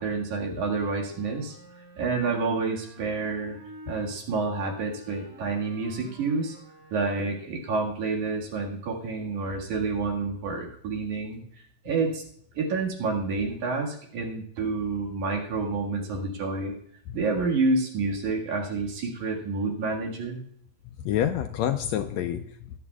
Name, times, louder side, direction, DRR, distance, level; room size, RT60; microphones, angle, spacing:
voice 1, 0.0-1.6 2.0-3.6 3.9-6.6 6.9-11.4 11.8-12.2 12.5-16.7 17.1-20.4, right 3 dB, 75° right, -1 dB, 3.3 m, -28 dB
Wind instrument woodwind instrument, 0.9-4.1 4.8-7.5, equal, 35° right, 5.7 m, -49 dB
voice 2, 20.9-22.8, left 10 dB, 80° left, 7 dB, 1.6 m, -28 dB
19.0 x 10.0 x 2.3 m, 0.64 s
omnidirectional pair, 3.5 m